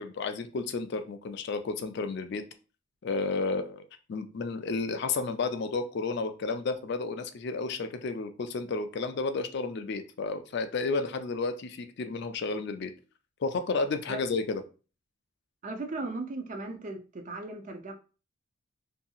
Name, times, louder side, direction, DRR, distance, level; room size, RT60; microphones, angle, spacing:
voice 1, 0.0-2.4 3.0-12.9 13.4-14.6, left 4 dB, 50° left, 8 dB, 0.3 m, -32 dB
voice 2, 15.6-17.9, right 2 dB, 35° right, 6 dB, 0.4 m, -37 dB
2.7 x 2.7 x 2.3 m, 0.34 s
head